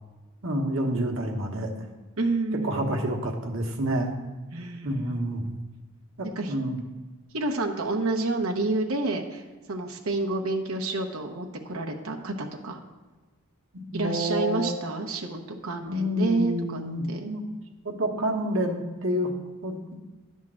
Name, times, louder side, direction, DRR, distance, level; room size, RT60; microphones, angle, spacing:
voice 1, 0.4-1.7 2.6-4.2 4.8-5.4 6.2-6.8 13.9-14.7 15.9-17.4 17.8-19.3 19.6-19.9, equal, 65° right, 2 dB, 1.2 m, -28 dB
voice 2, 2.2-3.0 4.5-5.2 6.4-6.5 7.3-9.4 9.7-12.8 13.9-16.8 17.1-17.3, right 2 dB, 80° right, 2 dB, 0.9 m, -29 dB
11.0 x 3.7 x 7.4 m, 1.3 s
head